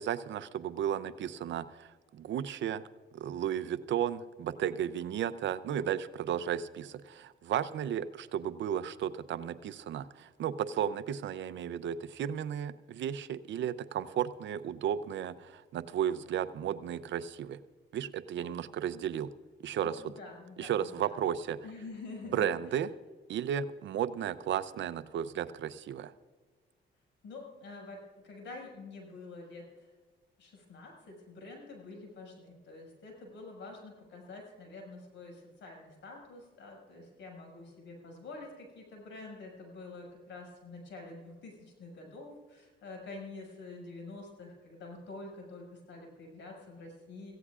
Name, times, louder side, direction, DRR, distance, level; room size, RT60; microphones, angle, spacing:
voice 1, 0.0-2.8 3.1-17.6 17.9-19.3 19.6-20.0 20.6-21.6 22.3-22.9 23.3-26.1, right 9 dB, 70° right, 13 dB, 0.7 m, -34 dB
voice 2, 19.8-21.2 21.6-22.5 27.2-29.9 30.4-47.3, left 3 dB, 70° left, 1 dB, 5.9 m, -47 dB
25.5 x 16.0 x 2.5 m, 1.4 s
cardioid pair, 90°, 20 cm